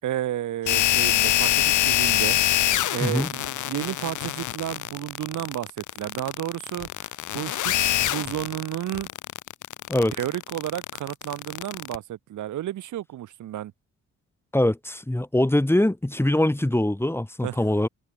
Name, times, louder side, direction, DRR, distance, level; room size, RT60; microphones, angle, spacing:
voice 1, 0.0-2.4 2.9-6.9 7.3-9.1 10.2-13.7 17.4-17.6, right 12 dB, 75° right, 5.8 m, -32 dB
sound 1, 0.7-12.0, left 13 dB, 75° left, 2.9 m, -25 dB
voice 2, 14.5-17.9, left 1 dB, 10° left, 4.5 m, -23 dB
open air
cardioid pair, 90°, 30 cm